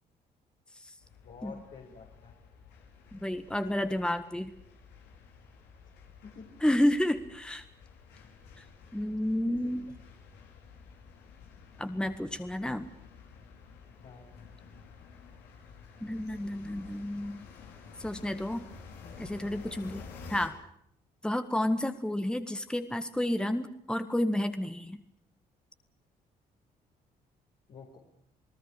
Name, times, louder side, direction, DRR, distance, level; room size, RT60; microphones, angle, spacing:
sound 1, 1.0-20.5, left 5 dB, 90° left, 4.4 m, -51 dB
voice 1, 1.2-2.4 6.2-6.5 9.5-10.0 14.0-14.2 19.9-20.2 27.7-28.0, left 5 dB, 65° left, -2 dB, 5.6 m, -50 dB
voice 2, 3.1-4.5 6.6-7.7 8.6-8.7 8.9-9.9 11.8-12.9 16.0-17.4 18.0-18.7 19.2-20.0 20.3-20.6 21.2-25.0, left 1 dB, 5° left, 9 dB, 1.7 m, -30 dB
28.5 x 19.0 x 6.6 m, 0.72 s
cardioid pair, 80°, 17 cm